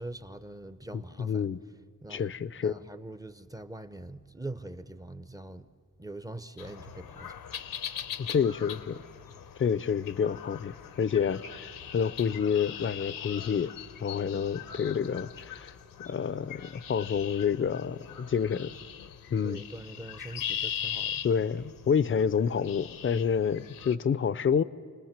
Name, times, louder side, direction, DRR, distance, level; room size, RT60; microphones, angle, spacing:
voice 1, 0.0-1.4 2.0-2.3 2.6-5.7 6.0-7.4 14.3-14.6 19.4-21.2, right 2 dB, 10° right, 0.6 m, -43 dB
voice 2, 0.9-1.6 2.1-2.8 8.2-9.0 9.6-13.7 14.0-15.7 16.0-18.7 19.3-19.6 21.2-24.6, left 7 dB, 40° left, 0.6 m, -28 dB
sound 1, 6.6-24.0, left 9 dB, 85° left, 1.0 m, -41 dB
30.0 x 20.5 x 7.4 m
wide cardioid pair, 155°, 33 cm